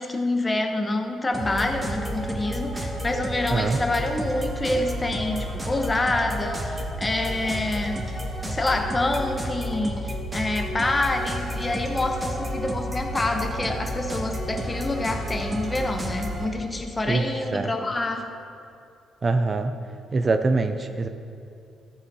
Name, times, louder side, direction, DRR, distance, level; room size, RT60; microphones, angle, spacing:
voice 1, 0.0-8.1 8.4-18.3, left 2 dB, 25° left, 5 dB, 1.0 m, -27 dB
sound 1, 1.3-16.5, equal, 20° right, 1.6 m, -31 dB
voice 2, 19.2-19.7 20.1-21.1, right 3 dB, 35° right, 8 dB, 0.5 m, -23 dB
14.0 x 5.4 x 4.8 m, 2.5 s
cardioid pair, 90°, 0 cm